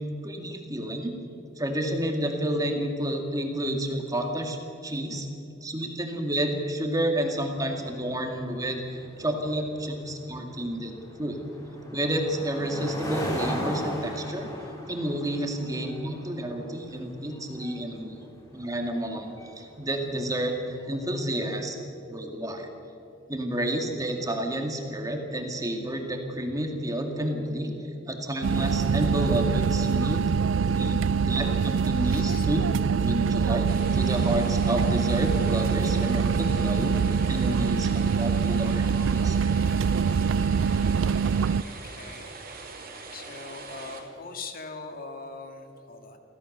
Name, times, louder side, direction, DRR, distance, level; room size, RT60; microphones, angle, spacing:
voice 1, 0.2-1.1 1.6-4.6 4.8-5.3 5.6-11.4 11.9-14.5 14.9-18.2 18.5-21.8 22.1-22.7 23.3-27.7 28.1-30.2 30.7-31.0 31.2-32.7 33.0-38.9 39.1-39.5, right 1 dB, 20° right, 3 dB, 2.3 m, -30 dB
sound 1, 7.5-21.0, equal, 20° left, 3.9 m, -39 dB
sound 2, 28.4-41.6, right 6 dB, 80° right, 0.4 m, -24 dB
voice 2, 32.0-32.5 41.6-42.4 43.1-46.2, left 3 dB, 50° left, 5 dB, 2.1 m, -41 dB
sound 3, 33.7-44.0, right 4 dB, 50° right, 3.0 m, -42 dB
23.5 x 16.5 x 6.8 m, 2.7 s
head